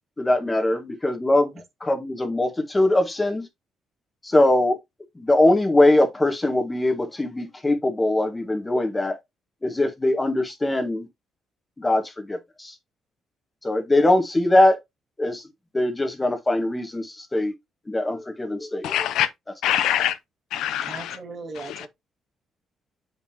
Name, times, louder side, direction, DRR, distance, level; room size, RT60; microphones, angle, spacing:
voice 1, 0.2-1.5 1.8-3.5 4.2-4.8 5.1-9.2 9.6-11.1 11.8-12.8 13.6-14.8 15.2-17.5 17.9-19.0, left 1 dB, 15° left, 1.6 m, -22 dB
voice 2, 18.8-19.3 19.6-20.2 20.5-21.2 21.7-21.9, left 11 dB, 85° left, 0.6 m, -24 dB
voice 3, 20.9-21.9, right 3 dB, 50° right, 2.0 m, -37 dB
7.1 x 5.4 x 2.9 m
cardioid pair, 90°, 0 cm